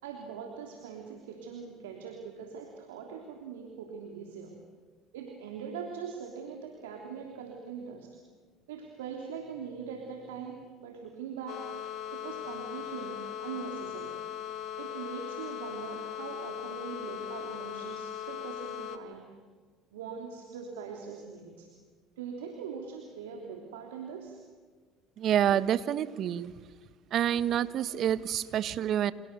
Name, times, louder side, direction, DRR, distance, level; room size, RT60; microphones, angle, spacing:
voice 1, 0.0-4.6 5.1-8.2 8.7-11.7 12.1-14.2 14.8-19.3 19.9-21.7 22.2-24.4, right 6 dB, 85° right, 2 dB, 3.2 m, -42 dB
sound 1, 11.5-19.0, left 10 dB, 60° left, 2.6 m, -39 dB
voice 2, 25.2-26.5 27.1-29.1, right 10 dB, 55° right, 15 dB, 1.4 m, -28 dB
29.5 x 28.0 x 7.0 m, 1.5 s
hypercardioid pair, 70°, 0 cm